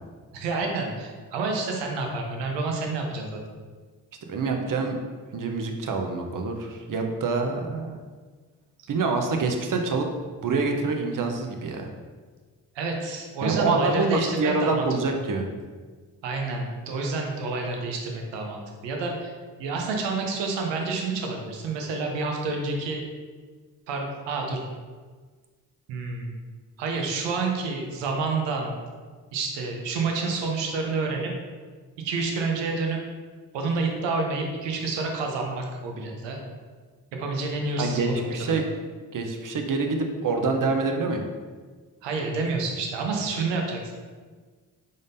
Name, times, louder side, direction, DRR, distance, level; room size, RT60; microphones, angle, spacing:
voice 1, 0.3-3.4 12.7-15.2 16.2-19.3 19.6-23.0 23.9-24.6 25.9-26.3 26.8-28.8 29.3-31.3 32.0-33.0 33.5-36.4 37.2-38.6 42.0-43.9, right 3 dB, 85° right, 1 dB, 0.7 m, -29 dB
voice 2, 4.3-5.0 5.3-8.0 8.9-10.1 10.4-11.9 13.4-15.5 37.8-38.6 39.1-41.2 43.2-43.3, right 3 dB, 50° right, 4 dB, 0.7 m, -26 dB
3.8 x 3.6 x 2.6 m, 1.5 s
supercardioid pair, 40°, 42 cm